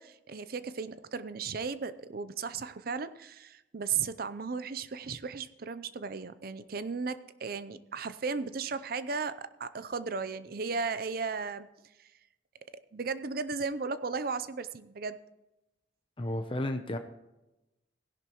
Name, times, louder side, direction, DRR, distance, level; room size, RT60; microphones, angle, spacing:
voice 1, 0.0-12.1 12.9-15.2, right 5 dB, 50° right, 14 dB, 0.6 m, -35 dB
voice 2, 16.2-17.0, left 1 dB, 30° left, 6 dB, 0.7 m, -32 dB
16.5 x 11.0 x 3.0 m, 0.96 s
head